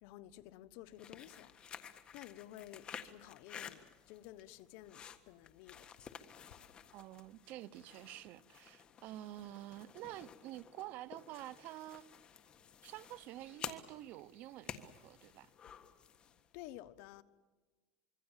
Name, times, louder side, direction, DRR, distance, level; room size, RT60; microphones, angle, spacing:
voice 1, 0.0-1.5 2.1-5.9 16.5-17.2, left 14 dB, 65° left, 1.2 m, -53 dB
sound 1, 0.9-16.5, left 8 dB, 30° left, 1.6 m, -52 dB
voice 2, 6.9-12.1 12.8-15.5, right 15 dB, 55° right, 0.8 m, -49 dB
26.0 x 23.5 x 7.4 m
supercardioid pair, 145°, 3 cm